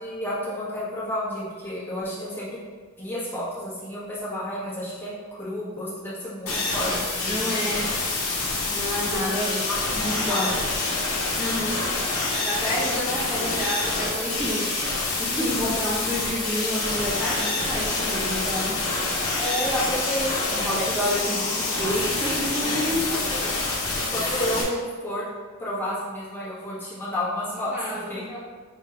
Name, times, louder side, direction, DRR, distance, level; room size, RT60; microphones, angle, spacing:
voice 1, 0.0-2.6 3.0-7.6 9.1-9.9 10.3-10.6 19.4-21.0 23.1-23.5 23.9-25.2 25.6-28.2, left 1 dB, 10° left, -9 dB, 1.3 m, -31 dB
sound 1, 6.5-24.6, left 3 dB, 85° left, 1.0 m, -27 dB
voice 2, 7.2-7.9 8.7-10.5 11.4-11.8 12.4-14.7 15.2-18.7 20.5-23.0 27.7-28.4, equal, 10° right, -9 dB, 0.6 m, -29 dB
5.5 x 3.5 x 2.5 m, 1.5 s
head